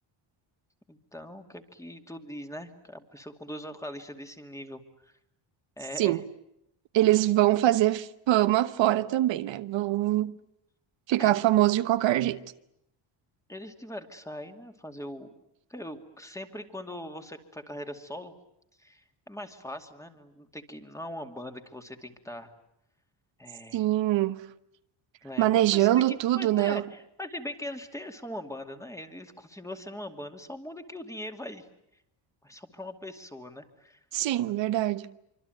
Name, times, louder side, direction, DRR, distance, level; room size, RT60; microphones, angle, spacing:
voice 1, 0.9-5.1 5.8-6.2 11.2-11.4 13.5-15.3 15.7-18.3 18.8-22.5 23.4-23.8 25.2-31.6 32.4-34.0, left 1 dB, 5° left, 2.5 m, -41 dB
voice 2, 6.9-10.3 11.1-12.4 23.7-24.4 25.4-26.8 34.1-35.1, right 15 dB, 70° right, 1.1 m, -23 dB
25.5 x 25.5 x 9.3 m
cardioid pair, 130°, 46 cm